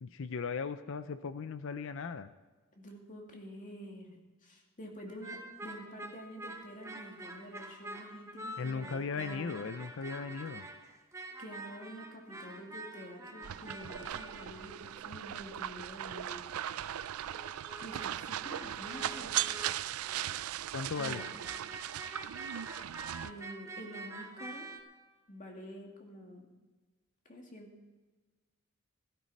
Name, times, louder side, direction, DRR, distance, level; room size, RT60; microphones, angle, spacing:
voice 1, 0.0-2.3 8.6-10.7 20.7-21.2, left 5 dB, 65° left, 12 dB, 0.5 m, -37 dB
voice 2, 2.7-9.7 11.4-16.5 17.8-19.4 21.0-21.3 23.2-24.7 25.3-26.5 27.3-27.7, equal, 40° left, 1 dB, 2.3 m, -48 dB
sound 1, 5.1-15.2 16.0-16.1 16.5-20.5 20.9-24.8, right 2 dB, 15° right, 1.0 m, -47 dB
sound 2, 13.4-23.3, right 11 dB, 80° right, 0.4 m, -38 dB
16.5 x 13.0 x 4.2 m, 1.3 s
head